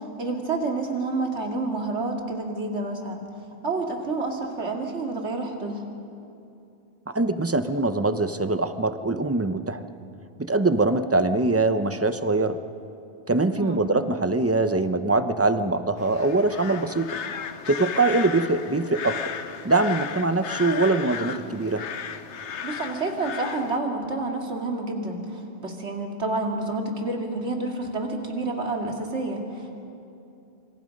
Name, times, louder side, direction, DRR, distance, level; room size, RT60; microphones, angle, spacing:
voice 1, 0.2-3.2 3.6-5.8 13.6-13.8 22.6-29.7, right 3 dB, 75° right, 2 dB, 2.6 m, -29 dB
voice 2, 7.1-9.8 10.4-12.6 13.3-17.2 17.7-19.3 19.6-21.8, right 2 dB, 15° right, 10 dB, 0.6 m, -23 dB
sound 1, 16.0-23.8, left 7 dB, 75° left, 1.2 m, -35 dB
27.0 x 25.5 x 5.3 m, 2.7 s
omnidirectional pair, 1.2 m